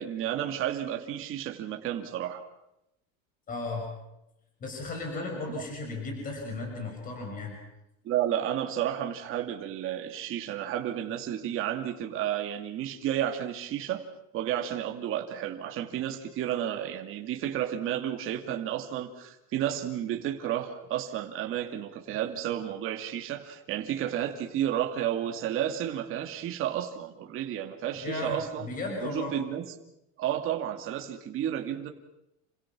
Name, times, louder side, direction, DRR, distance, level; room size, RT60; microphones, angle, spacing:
voice 1, 0.0-2.4 5.5-5.6 8.0-14.0 14.3-28.7 29.0-29.7 30.2-31.9, right 11 dB, 35° right, 4 dB, 2.3 m, -32 dB
voice 2, 3.5-3.9 4.6-7.6 28.0-29.4, left 3 dB, 20° left, 1 dB, 6.4 m, -35 dB
28.5 x 26.0 x 6.2 m, 0.86 s
cardioid pair, 180°, 37 cm